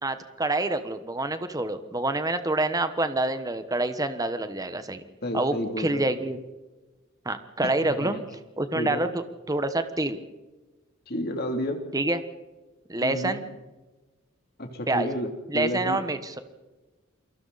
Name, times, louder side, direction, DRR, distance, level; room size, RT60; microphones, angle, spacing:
voice 1, 0.0-5.0 5.3-6.4 7.2-8.2 8.6-9.1 9.5-10.2 11.9-12.2 12.9-13.5 14.9-15.1 15.5-16.4, right 2 dB, 15° right, 10 dB, 1.2 m, -27 dB
voice 2, 5.2-6.1 7.6-8.2 8.7-9.0 11.1-11.8 13.0-13.4 14.6-16.0, equal, 50° left, 4 dB, 3.0 m, -31 dB
29.0 x 23.0 x 4.2 m, 1.2 s
head